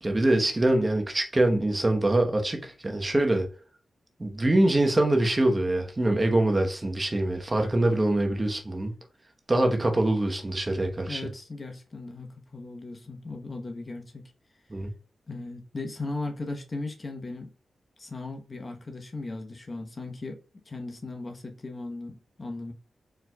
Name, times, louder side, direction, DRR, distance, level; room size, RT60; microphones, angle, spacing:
voice 1, 0.0-3.5 4.2-8.9 9.5-11.2 14.7-14.9, right 1 dB, 30° right, 1.1 m, -24 dB
voice 2, 11.1-14.2 15.3-17.5 18.0-20.4 20.7-22.7, left 2 dB, 40° left, 1.0 m, -37 dB
4.5 x 4.0 x 2.3 m
supercardioid pair, 40°, 0 cm